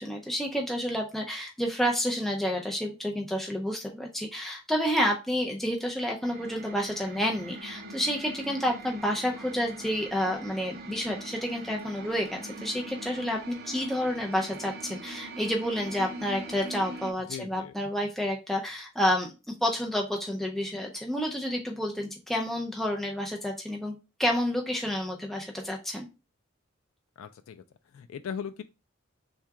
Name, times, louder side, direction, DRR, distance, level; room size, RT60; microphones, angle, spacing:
voice 1, 0.0-26.1, equal, ahead, 0.4 m, -30 dB
sound 1, 6.2-17.1, right 2 dB, 50° right, 0.7 m, -42 dB
voice 2, 17.3-17.7 27.2-27.6 27.9-28.6, left 7 dB, 80° left, 0.3 m, -38 dB
3.6 x 2.3 x 4.4 m
head